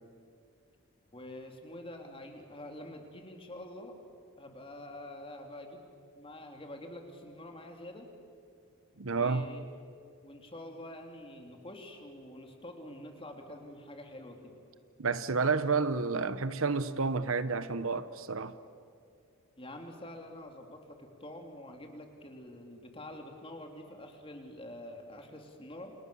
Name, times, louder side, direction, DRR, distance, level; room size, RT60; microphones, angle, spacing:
voice 1, 1.1-4.0 4.4-5.9 6.2-8.1 9.1-9.6 10.2-14.5 19.6-25.9, left 1 dB, 25° left, 3.2 m, -46 dB
voice 2, 9.0-9.5 15.0-18.6, right 4 dB, 65° right, 1.0 m, -30 dB
29.0 x 28.5 x 7.1 m
head